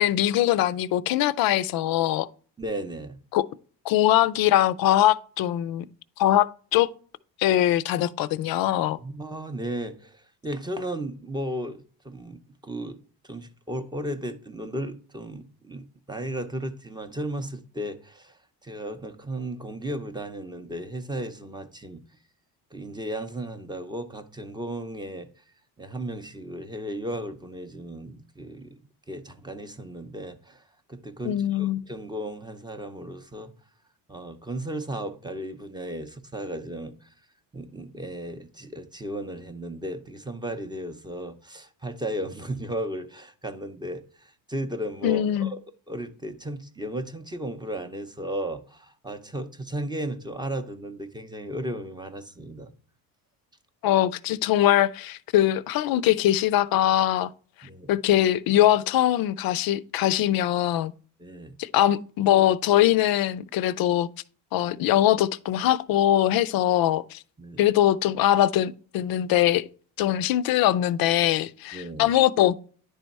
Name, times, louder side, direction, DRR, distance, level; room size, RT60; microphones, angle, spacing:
voice 1, 0.0-2.3 3.3-3.5 3.9-5.9 6.2-6.9 7.4-9.0 31.2-31.8 45.0-45.5 53.8-57.3 57.9-60.9 61.6-64.1 64.5-67.2 67.6-69.6 70.0-72.5, left 13 dB, 60° left, 0.5 m, -22 dB
voice 2, 2.6-3.2 9.0-13.0 13.2-22.0 22.7-25.3 25.8-28.8 29.1-30.6 30.9-33.5 34.1-37.1 37.5-45.6 45.9-52.7 57.6-57.9 61.2-61.6 67.4-67.6 70.0-70.2 71.7-72.1, right 1 dB, 10° right, 0.6 m, -35 dB
10.0 x 3.4 x 4.1 m
cardioid pair, 125°, 42 cm